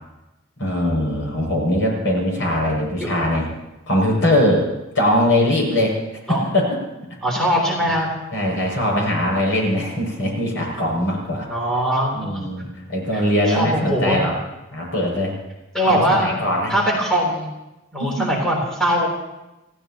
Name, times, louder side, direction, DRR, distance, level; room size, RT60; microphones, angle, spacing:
voice 1, 0.6-3.5 3.9-4.7 4.9-5.9 6.3-6.8 8.3-11.5 12.1-14.3 14.7-15.4 15.9-16.7 18.0-18.3, left 1 dB, 65° left, -1 dB, 6.9 m, -21 dB
voice 2, 7.2-8.1 11.5-12.4 13.1-13.2 13.5-14.2 15.7-16.3 16.7-17.5 17.9-19.1, equal, 5° left, -3 dB, 3.7 m, -21 dB
27.5 x 16.5 x 3.0 m, 0.98 s
head